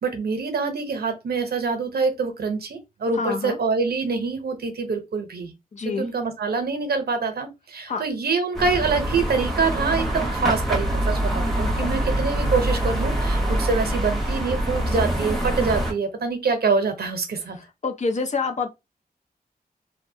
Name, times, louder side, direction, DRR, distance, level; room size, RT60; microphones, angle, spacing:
voice 1, 0.0-5.5 5.8-17.6, right 4 dB, 85° right, 0.7 m, -25 dB
voice 2, 3.1-3.6 5.7-6.1 7.9-8.0 11.8-11.9 17.8-18.7, left 4 dB, 50° left, 0.5 m, -27 dB
sound 1, 8.5-15.9, right 1 dB, ahead, 0.7 m, -24 dB
2.6 x 2.1 x 2.6 m
wide cardioid pair, 120°, 16 cm